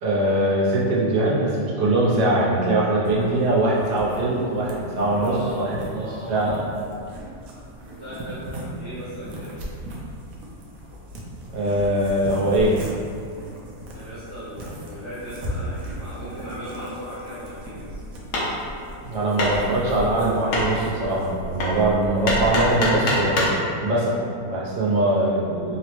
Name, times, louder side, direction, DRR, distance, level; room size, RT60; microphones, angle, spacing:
voice 1, 0.0-6.5 11.5-12.7 19.0-23.5 23.8-25.8, right 1 dB, 90° right, -6 dB, 1.3 m, -22 dB
sound 1, 3.0-23.0, equal, 70° right, 0.9 m, -38 dB
voice 2, 5.1-6.6 7.8-9.6 13.9-18.0, equal, 55° left, -13 dB, 0.6 m, -37 dB
Hammer, 17.6-23.6, left 1 dB, 75° left, 1.2 m, -26 dB
3.5 x 2.0 x 2.9 m, 2.5 s
omnidirectional pair, 1.8 m